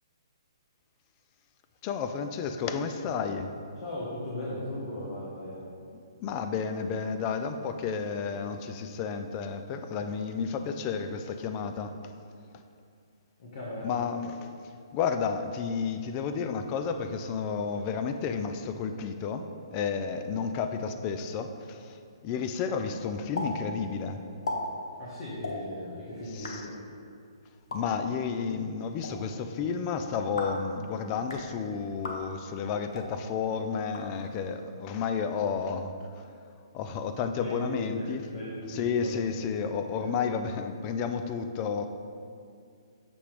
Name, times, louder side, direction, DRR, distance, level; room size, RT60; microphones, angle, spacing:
voice 1, 1.8-3.5 6.2-11.9 13.8-14.5 14.9-22.0 22.2-24.2 26.3-26.6 27.7-36.2 36.7-38.2 38.7-41.8, left 6 dB, 30° left, 7 dB, 0.4 m, -31 dB
voice 2, 3.8-5.6 13.4-14.0 25.0-26.8 37.4-39.3 39.9-40.1, left 1 dB, 50° left, -6 dB, 1.2 m, -37 dB
sound 1, 23.3-23.5 23.8-23.9 24.3-24.6 25.4-25.6 26.2-26.5 27.5-27.8 28.8-29.1 30.2-30.6 31.1-31.4 32.0-32.2 32.9-33.1 33.8-34.5, left 2 dB, 75° left, 0.9 m, -37 dB
6.9 x 2.9 x 4.9 m, 2.4 s
hypercardioid pair, 145°, 3 cm